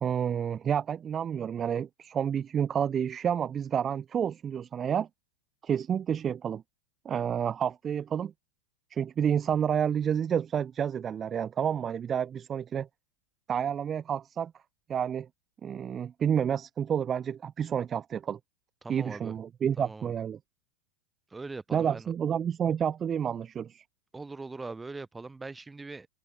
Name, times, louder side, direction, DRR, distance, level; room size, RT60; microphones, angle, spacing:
voice 1, 0.0-5.1 5.6-6.6 7.0-8.3 8.9-12.9 13.5-14.5 14.9-15.3 15.6-18.4 18.9-20.4 21.7-23.8, right 8 dB, 25° right, 0.4 m, -29 dB
voice 2, 18.8-19.3 19.8-20.1 21.3-22.1 24.1-26.1, right 3 dB, 10° right, 1.2 m, -41 dB
hypercardioid pair, 95°, 0 cm